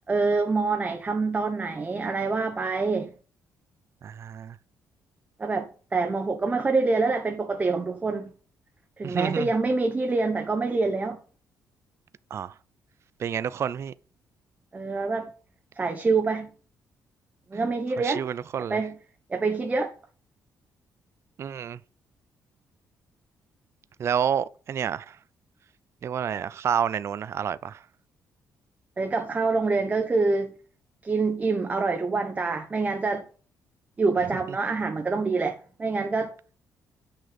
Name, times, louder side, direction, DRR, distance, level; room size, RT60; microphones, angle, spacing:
voice 1, 0.1-3.1 5.4-8.3 9.0-11.2 14.7-15.3 15.8-16.5 17.5-18.2 18.7-19.0 19.3-19.9 29.0-30.5 31.0-33.2 34.0-36.3, right 3 dB, 20° right, 1.1 m, -26 dB
voice 2, 4.0-4.6 9.0-9.5 12.3-12.5 13.2-13.9 18.0-18.8 21.4-21.8 24.0-25.2 26.0-27.8, right 8 dB, 45° right, 0.5 m, -29 dB
9.8 x 6.4 x 6.9 m
cardioid pair, 140°, 6 cm